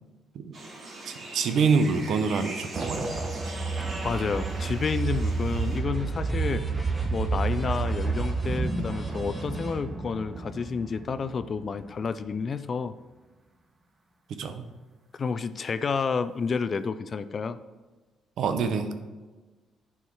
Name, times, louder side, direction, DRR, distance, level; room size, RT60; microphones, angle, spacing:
sound 1, 0.5-5.8, right 2 dB, 50° right, 2.4 m, -41 dB
voice 1, 1.0-3.3 14.3-14.6 18.4-18.9, right 5 dB, 75° right, 8 dB, 0.8 m, -26 dB
sound 2, 2.7-11.8, right 4 dB, 25° right, 1.0 m, -30 dB
voice 2, 4.0-6.7 7.1-13.0 15.1-17.6, left 5 dB, 45° left, 12 dB, 0.4 m, -30 dB
sound 3, 5.1-10.7, left 2 dB, 10° left, 2.4 m, -45 dB
11.0 x 4.6 x 4.7 m, 1.3 s
cardioid pair, 90°, 0 cm